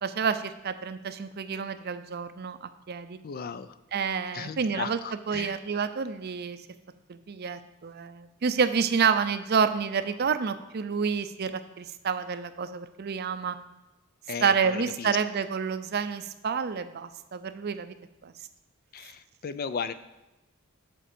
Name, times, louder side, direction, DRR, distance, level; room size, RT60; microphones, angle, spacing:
voice 1, 0.0-3.2 3.9-5.0 5.3-6.6 7.1-13.6 14.4-17.9 18.2-18.3, right 6 dB, 50° right, 11 dB, 0.5 m, -29 dB
voice 2, 3.2-3.8 4.3-5.6 14.3-15.2 18.9-19.9, left 6 dB, 45° left, 13 dB, 0.4 m, -36 dB
7.6 x 4.4 x 6.7 m, 1.0 s
head